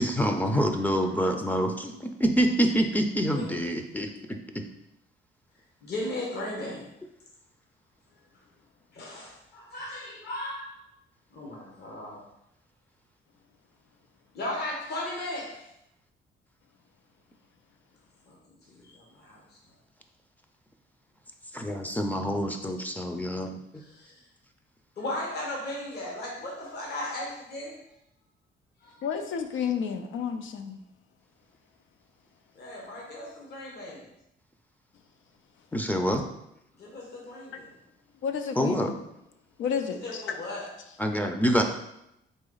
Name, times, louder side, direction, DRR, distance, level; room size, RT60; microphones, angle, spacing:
voice 1, 0.0-4.6 21.5-23.6 35.7-36.2 38.6-38.9 41.0-41.6, equal, 10° left, 4 dB, 0.5 m, -26 dB
voice 2, 5.8-6.9 8.9-10.8 11.3-12.2 14.3-15.6 18.3-18.4 18.7-19.6 23.7-24.2 25.0-27.7 28.8-29.0 32.5-34.1 36.8-37.7 39.9-40.7, left 1 dB, 55° left, -3 dB, 1.2 m, -36 dB
voice 3, 29.0-30.8 38.2-38.9 39.6-40.4, left 7 dB, 75° left, 7 dB, 0.5 m, -31 dB
4.0 x 3.0 x 3.9 m, 0.83 s
cardioid pair, 90°, 20 cm